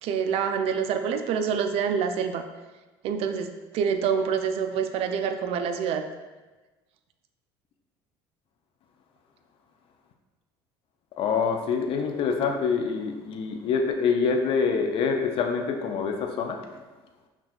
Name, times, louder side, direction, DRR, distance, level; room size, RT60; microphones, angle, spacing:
voice 1, 0.0-2.4 3.0-3.5 3.7-6.0, right 7 dB, 60° right, 7 dB, 0.4 m, -26 dB
voice 2, 11.2-16.6, left 5 dB, 50° left, 4 dB, 0.5 m, -25 dB
5.8 x 2.3 x 2.4 m, 1.2 s
supercardioid pair, 85°, 12 cm